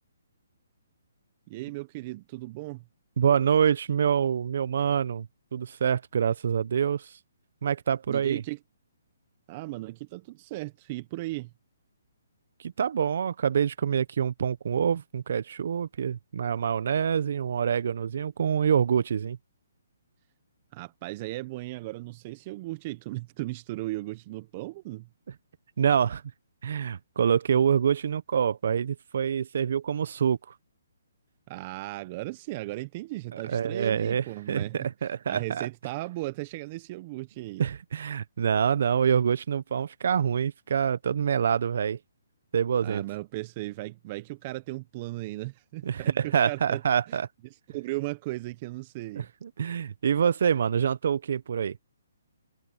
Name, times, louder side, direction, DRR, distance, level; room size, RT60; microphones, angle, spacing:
voice 1, 1.5-2.8 8.1-8.6 9.5-11.5 20.7-25.1 31.5-37.6 42.8-46.8 47.1-47.2 47.4-49.3, right 20 dB, 35° right, 0.9 m, -36 dB
voice 2, 3.2-5.3 5.5-7.1 7.6-8.4 12.6-19.4 25.8-26.2 26.6-30.4 33.4-35.7 37.6-42.0 42.5-43.0 45.8-47.3 49.4-51.8, right 7 dB, 60° right, 1.3 m, -26 dB
hypercardioid pair, 145°, 0 cm